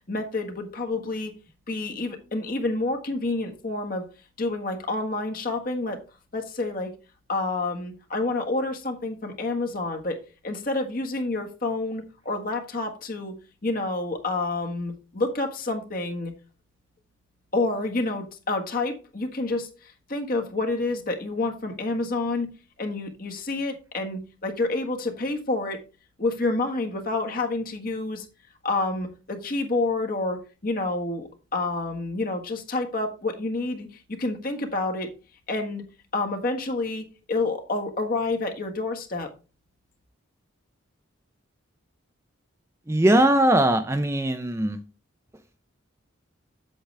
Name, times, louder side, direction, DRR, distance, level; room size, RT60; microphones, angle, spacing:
voice 1, 0.1-1.3 1.7-4.0 4.4-6.0 6.3-6.9 7.3-13.3 13.6-16.3 17.5-22.5 22.8-25.8 26.2-28.3 28.6-35.1 35.5-35.8 36.1-39.3, left 2 dB, 45° left, 3 dB, 1.5 m, -28 dB
voice 2, 42.9-44.8, right 1 dB, 15° right, 8 dB, 0.5 m, -20 dB
8.1 x 7.9 x 3.3 m, 0.32 s
head